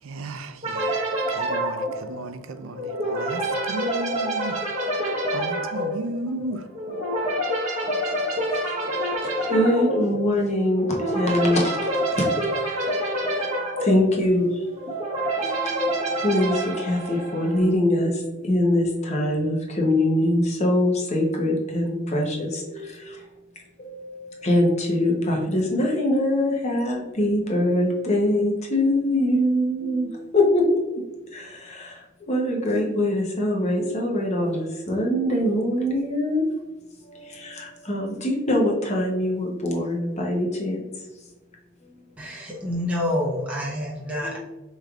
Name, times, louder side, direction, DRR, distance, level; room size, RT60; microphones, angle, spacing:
voice 1, 0.0-4.7 5.3-6.7, right 2 dB, 80° right, 0.4 m, -34 dB
sound 1, 0.6-17.8, right 1 dB, 35° right, 0.9 m, -27 dB
voice 2, 9.3-12.9 13.3-13.4 13.8-14.8 15.4-23.3 23.8-30.7 31.3-36.4 37.0-40.8 41.8-42.0 44.2-44.4, left 1 dB, 35° left, 0.8 m, -23 dB
voice 3, 42.2-44.4, left 1 dB, 5° right, 0.8 m, -27 dB
4.8 x 3.2 x 2.4 m
head